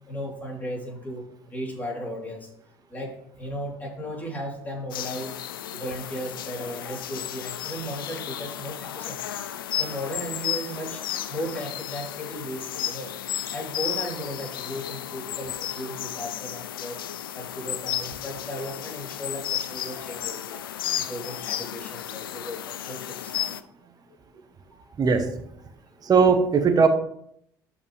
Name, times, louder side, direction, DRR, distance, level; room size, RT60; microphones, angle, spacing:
voice 1, 0.1-2.5 2.9-5.4 5.7-13.1 13.5-17.1 17.3-20.7 20.9-23.5 24.7-24.8 26.1-26.2, equal, 15° left, -2 dB, 3.6 m, -36 dB
sound 1, 4.9-23.6, left 11 dB, 85° left, 0.4 m, -33 dB
voice 2, 25.0-25.3 26.0-26.9, right 5 dB, 35° right, 7 dB, 1.1 m, -19 dB
12.0 x 5.1 x 3.4 m, 0.71 s
hypercardioid pair, 65°, 11 cm